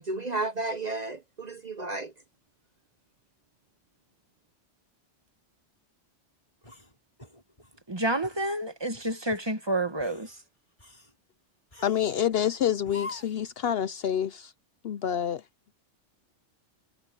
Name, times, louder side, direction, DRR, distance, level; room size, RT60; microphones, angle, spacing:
voice 1, 0.0-2.1, right 2 dB, 40° right, 0.9 m, -32 dB
sound 1, 6.6-7.8 8.2-8.5 8.9-9.5 9.9-10.4 10.8-11.1 11.7-12.2 12.8-13.5, left 3 dB, 30° left, 6.3 m, -45 dB
voice 2, 7.9-10.3, right 1 dB, 20° right, 1.5 m, -29 dB
voice 3, 11.8-14.5 14.8-15.4, left 9 dB, 65° left, 0.7 m, -27 dB
omnidirectional pair, 1.2 m